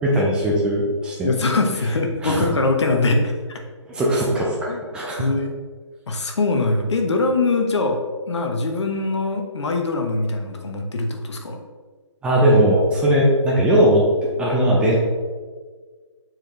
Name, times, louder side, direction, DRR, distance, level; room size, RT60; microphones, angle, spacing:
voice 1, 0.0-1.4 2.2-2.4 3.9-5.2 12.2-14.0 14.4-15.0, right 1 dB, 5° right, -3 dB, 0.5 m, -19 dB
voice 2, 1.2-3.6 4.7-4.8 5.2-5.5 6.1-8.0 8.3-11.6, left 3 dB, 60° left, 4 dB, 1.0 m, -22 dB
7.4 x 4.5 x 3.1 m, 1.5 s
figure-of-eight pair, 150°, 16 cm